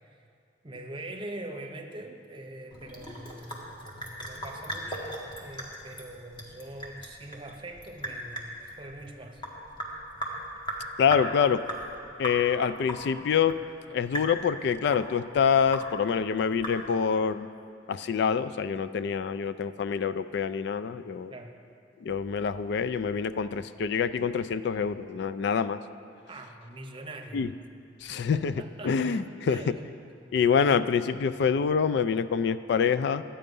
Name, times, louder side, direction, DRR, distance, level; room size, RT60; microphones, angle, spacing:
voice 1, 0.6-5.1 5.4-9.4 21.3-21.5 26.3-27.5 28.3-29.8, right 1 dB, 30° right, 3 dB, 0.9 m, -43 dB
Sink (filling or washing) / Drip, 2.7-17.2, right 1 dB, 25° left, 1.6 m, -39 dB
voice 2, 11.0-11.6 12.2-13.6 13.9-17.5 17.9-21.3 22.0-25.8 27.3-27.5 28.0-28.5 28.8-29.6 30.3-33.2, left 6 dB, 65° left, 13 dB, 0.3 m, -26 dB
12.5 x 8.7 x 5.3 m, 2.4 s
head